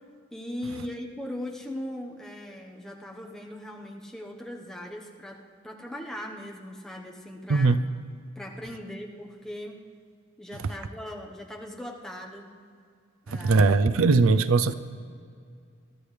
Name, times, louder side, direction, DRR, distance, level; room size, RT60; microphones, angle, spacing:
voice 1, 0.3-5.4 5.6-7.8 8.4-9.8 10.4-12.5 13.3-14.3, left 1 dB, 5° left, -1 dB, 1.1 m, -39 dB
voice 2, 13.3-14.7, right 3 dB, 80° right, 14 dB, 0.5 m, -20 dB
22.0 x 13.0 x 3.3 m, 2.3 s
head